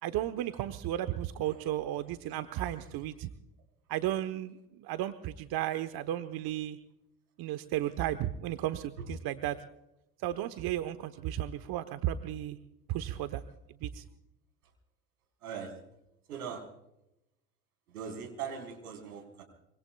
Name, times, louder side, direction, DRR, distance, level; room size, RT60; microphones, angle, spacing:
voice 1, 0.0-3.3 3.9-4.5 4.8-6.8 7.4-9.6 10.2-12.6 12.9-13.4 13.8-14.0, right 12 dB, 55° right, 10 dB, 1.1 m, -34 dB
voice 2, 16.3-16.6 17.9-19.4, right 7 dB, 85° right, 4 dB, 4.6 m, -40 dB
25.0 x 24.5 x 2.3 m, 0.86 s
hypercardioid pair, 70°, 43 cm